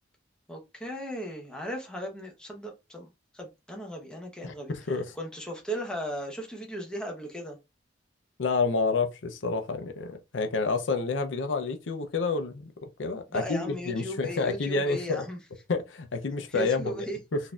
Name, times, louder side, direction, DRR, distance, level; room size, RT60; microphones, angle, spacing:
voice 1, 0.5-7.6 13.3-15.4 16.5-17.2, equal, 5° left, 0.8 m, -37 dB
voice 2, 4.4-5.1 8.4-12.7 13.0-15.2 15.7-16.9 17.3-17.4, left 4 dB, 85° left, 0.6 m, -29 dB
3.9 x 2.6 x 2.3 m
head